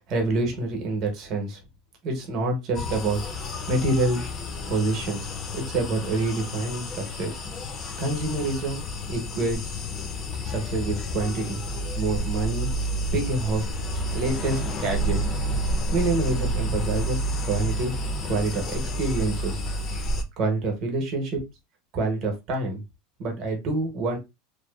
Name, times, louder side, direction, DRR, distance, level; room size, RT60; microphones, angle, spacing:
voice 1, 0.0-1.6 2.0-4.3 4.7-5.2 5.5-7.4 8.0-9.7 10.4-11.6 11.9-12.7 13.1-13.6 14.1-15.2 15.9-17.9 18.2-19.6 20.4-21.4 21.9-22.8 23.2-24.2, right 2 dB, 40° right, 2 dB, 0.8 m, -27 dB
sound 1, 2.7-20.2, equal, 30° left, 0.4 m, -30 dB
2.6 x 2.2 x 2.2 m, 0.23 s
supercardioid pair, 155°, 0 cm